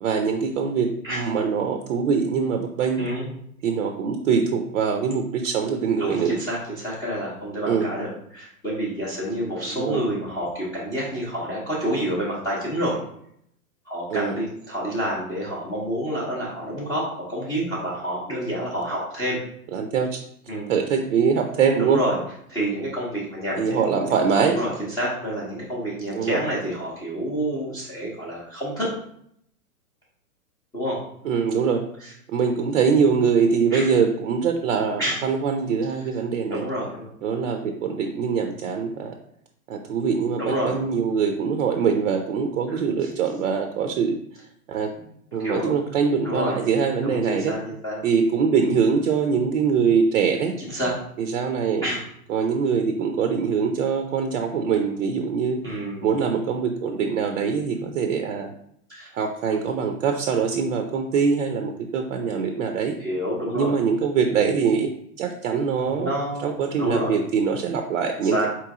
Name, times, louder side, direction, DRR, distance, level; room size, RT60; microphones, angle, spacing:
voice 1, 0.0-3.0 3.6-6.4 7.6-7.9 9.8-10.0 14.1-14.3 19.7-20.2 20.7-22.0 23.6-24.6 26.1-26.4 31.3-31.8 32.3-36.6 37.2-39.1 39.7-44.2 44.7-44.9 45.3-47.5 48.0-50.6 51.3-51.8 52.3-55.6 56.0-58.5 59.2-63.0 63.5-64.9 65.2-66.1 66.4-68.5, right 6 dB, 60° right, 5 dB, 0.6 m, -23 dB
voice 2, 3.0-3.3 6.0-13.0 13.9-19.4 20.5-20.7 21.8-22.2 22.5-24.1 24.4-28.9 30.7-31.0 32.0-32.1 33.7-33.9 35.0-35.2 36.5-37.1 40.4-40.7 42.7-43.1 45.0-45.1 45.4-45.8 46.2-46.5 47.0-48.0 50.6-50.9 51.8-52.0 55.6-56.2 58.9-59.1 63.0-63.8 65.8-67.3 68.2-68.5, equal, 10° left, -8 dB, 0.6 m, -28 dB
4.5 x 3.1 x 3.5 m, 0.70 s
hypercardioid pair, 145°, 45 cm